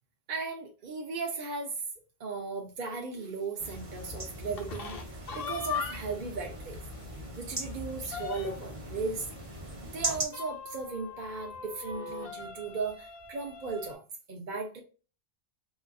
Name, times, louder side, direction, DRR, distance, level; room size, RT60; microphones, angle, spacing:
voice 1, 0.3-1.8 2.2-4.9 5.3-6.8 7.4-9.3 9.8-14.0 14.3-14.8, right 4 dB, 55° right, 1 dB, 0.8 m, -36 dB
sound 1, 3.6-10.3, right 2 dB, 35° right, 1.0 m, -39 dB
sound 2, 4.4-6.3 6.7-6.8 7.1-7.2 7.6-8.8 10.1-13.9, left 6 dB, 65° left, 1.0 m, -40 dB
4.1 x 2.5 x 2.3 m, 0.33 s
omnidirectional pair, 1.1 m